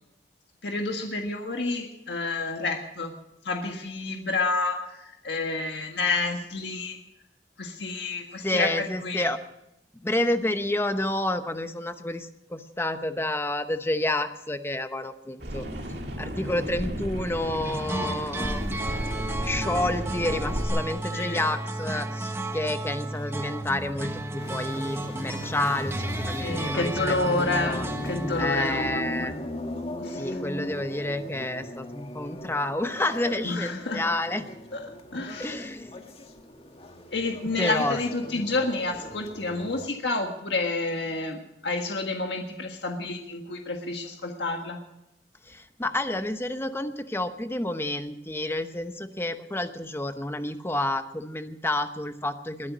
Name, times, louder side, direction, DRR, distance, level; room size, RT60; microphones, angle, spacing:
voice 1, 0.6-3.1 3.4-7.0 7.6-9.3 21.1-21.4 26.4-29.3 30.0-30.4 33.4-34.0 34.7-35.6 37.1-44.8, left 3 dB, 75° left, 3 dB, 1.6 m, -29 dB
voice 2, 8.4-9.4 10.0-15.7 16.2-18.6 19.4-27.9 28.4-29.3 30.1-34.5 35.4-36.0 37.6-38.0 38.3-38.4 45.5-52.7, left 1 dB, 15° left, 9 dB, 0.9 m, -29 dB
sound 1, 15.4-20.7, equal, 65° right, 2.4 m, -33 dB
sound 2, 17.6-28.4, right 1 dB, 15° right, 1.0 m, -33 dB
sound 3, 24.4-39.9, left 1 dB, 35° left, 1.6 m, -38 dB
21.0 x 11.0 x 6.1 m, 0.86 s
head